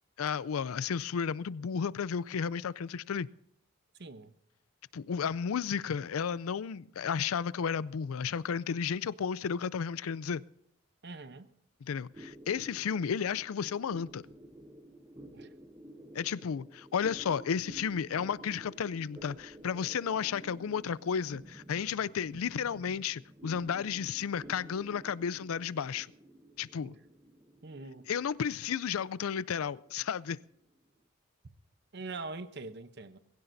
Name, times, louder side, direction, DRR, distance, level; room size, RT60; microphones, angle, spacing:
voice 1, 0.2-3.3 4.9-10.4 11.8-14.2 16.1-26.1 26.6-26.9 28.1-30.4, left 7 dB, 85° left, 0.4 m, -33 dB
voice 2, 4.0-4.3 11.0-11.5 15.3-15.5 26.8-27.0 27.6-28.1 31.9-33.2, right 3 dB, 55° right, 0.8 m, -43 dB
sound 1, 12.1-30.9, right 1 dB, 15° right, 0.8 m, -52 dB
22.0 x 16.0 x 2.7 m
head